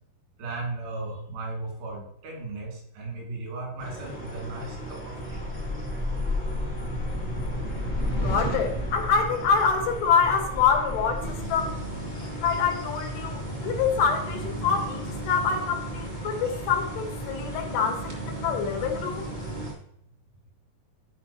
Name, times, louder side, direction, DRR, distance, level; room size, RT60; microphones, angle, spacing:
voice 1, 0.4-5.4, right 2 dB, 90° right, -2 dB, 4.6 m, -36 dB
sound 1, 3.8-19.7, right 1 dB, 40° left, 0.5 m, -37 dB
sound 2, 4.8-12.7, left 2 dB, 65° left, 1.0 m, -32 dB
voice 2, 8.1-11.8 12.4-19.3, left 6 dB, 85° left, 3 dB, 3.3 m, -26 dB
sound 3, 11.2-19.7, right 1 dB, 40° right, 0.8 m, -38 dB
12.5 x 5.0 x 2.9 m, 0.73 s
omnidirectional pair, 4.8 m